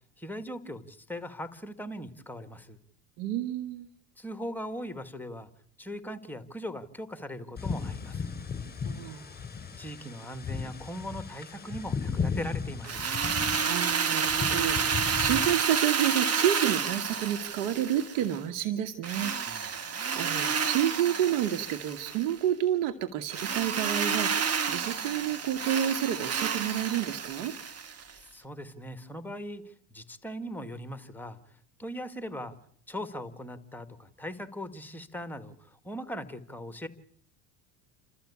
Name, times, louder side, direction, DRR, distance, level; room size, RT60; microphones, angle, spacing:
voice 1, 0.2-2.8 4.2-5.5 5.8-8.3 9.8-13.0 19.5-19.6 28.3-31.4 31.8-32.6 32.9-36.9, equal, 5° left, 11 dB, 1.8 m, -39 dB
voice 2, 3.2-3.9 8.8-9.3 13.6-27.5, right 11 dB, 85° right, 8 dB, 1.5 m, -30 dB
sound 1, 7.6-15.5, left 5 dB, 20° left, 4.8 m, -36 dB
Drill, 12.8-18.4 19.0-22.3 23.3-28.1, right 6 dB, 30° right, 1.8 m, -30 dB
29.0 x 13.5 x 8.4 m, 0.65 s
supercardioid pair, 115°, 46 cm